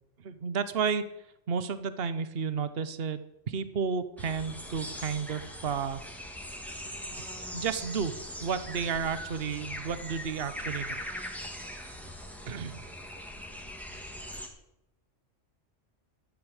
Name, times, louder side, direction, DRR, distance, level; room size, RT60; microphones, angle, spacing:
voice 1, 0.2-1.0 1.5-6.0 7.2-11.0 12.4-12.8, right 6 dB, 55° right, 12 dB, 1.2 m, -32 dB
sound 1, 4.2-14.5, equal, ahead, 2.1 m, -41 dB
12.5 x 9.5 x 8.1 m, 0.85 s
omnidirectional pair, 1.3 m